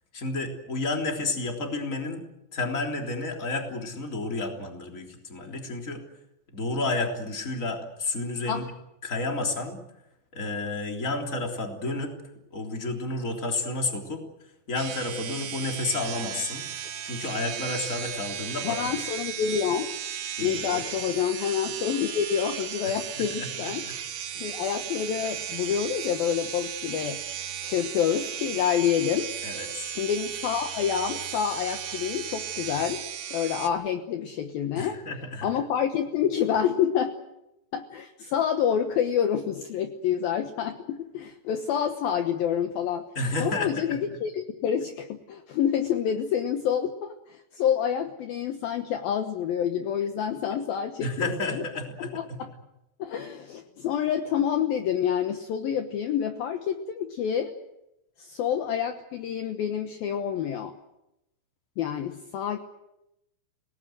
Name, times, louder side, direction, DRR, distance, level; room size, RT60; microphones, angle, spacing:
voice 1, 0.1-2.2 2.5-6.0 6.5-8.7 9.0-9.8 10.3-12.1 12.5-19.1 20.4-20.8 22.8-23.5 23.8-23.9 29.4-30.0 34.7-35.5 43.1-44.0 50.5-50.6 51.0-52.4, left 2 dB, 20° left, 2 dB, 2.9 m, -31 dB
sound 1, 14.8-33.7, right 9 dB, 60° right, 3.5 m, -35 dB
voice 2, 18.6-19.9 20.4-23.9 24.3-27.2 27.6-29.3 29.9-33.0 33.3-35.0 35.4-37.1 37.7-43.0 43.4-51.6 52.0-52.2 53.0-57.5 58.2-60.7 61.8-62.6, left 8 dB, 75° left, 6 dB, 2.2 m, -28 dB
29.0 x 18.5 x 7.9 m, 0.88 s
omnidirectional pair, 5.9 m